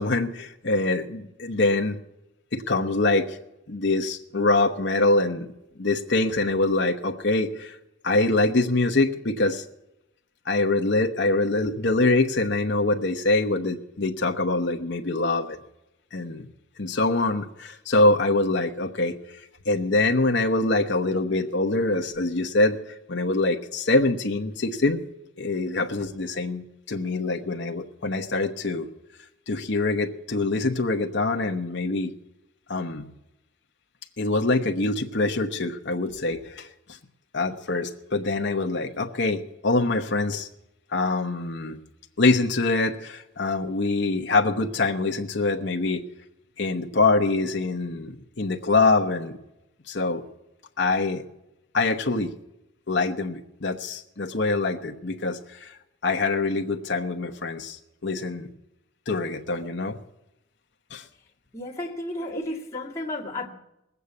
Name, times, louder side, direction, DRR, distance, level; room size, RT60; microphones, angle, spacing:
voice 1, 0.0-1.9 2.5-3.4 3.7-5.5 5.8-7.8 8.0-9.6 10.5-15.6 16.1-16.5 16.8-19.2 19.7-22.8 23.1-25.0 25.4-28.9 29.5-32.1 32.7-33.1 34.2-36.7 37.3-40.5 40.9-41.8 42.2-46.0 46.6-49.4 49.9-50.2 50.8-51.2 51.7-52.3 52.9-55.7 56.0-58.5 59.1-60.0 60.9-61.0 62.3-62.4, left 2 dB, 55° left, 3 dB, 0.9 m, -24 dB
voice 2, 61.5-63.5, left 1 dB, 15° left, -5 dB, 2.1 m, -32 dB
19.5 x 8.2 x 8.2 m, 0.88 s
head